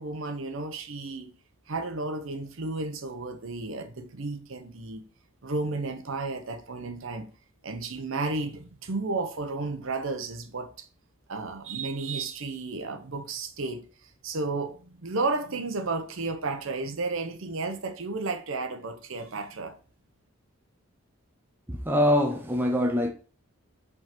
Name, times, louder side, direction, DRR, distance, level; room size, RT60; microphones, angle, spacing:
voice 1, 0.0-1.3 1.7-5.0 5.4-7.3 7.6-10.9 11.3-13.8 14.2-19.8, right 3 dB, 65° right, 0.8 m, -32 dB
voice 2, 21.7-23.1, left 1 dB, 10° right, 0.7 m, -24 dB
5.3 x 3.6 x 5.8 m
head